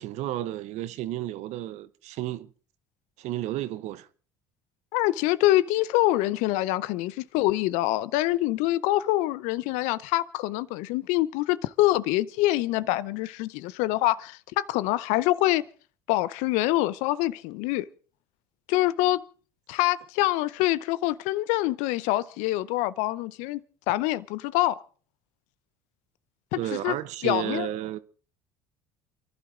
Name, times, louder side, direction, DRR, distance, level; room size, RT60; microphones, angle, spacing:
voice 1, 0.0-2.5 3.2-4.1 26.6-28.0, right 14 dB, 65° right, 0.9 m, -32 dB
voice 2, 4.9-15.6 16.1-17.9 18.7-19.2 19.7-23.6 23.9-24.8 26.5-27.0 27.2-27.7, left 16 dB, 70° left, 0.7 m, -25 dB
29.0 x 11.5 x 3.7 m
hypercardioid pair, 65°, 13 cm